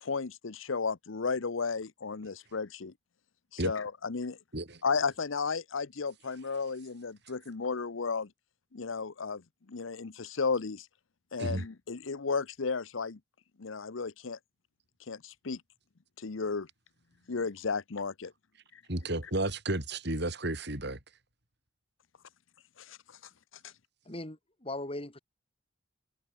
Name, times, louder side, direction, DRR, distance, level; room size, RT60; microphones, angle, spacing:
voice 1, 0.0-2.9 3.6-4.4 4.8-8.3 8.7-9.4 9.7-10.9 11.3-13.2 13.6-14.4 15.1-15.6 16.2-16.7 17.3-18.3 22.8-23.0, left 4 dB, 80° left, 0.8 m, -33 dB
voice 2, 18.9-21.0, right 1 dB, 60° right, 5.6 m, -32 dB
voice 3, 24.0-25.2, left 1 dB, 30° left, 3.2 m, -39 dB
head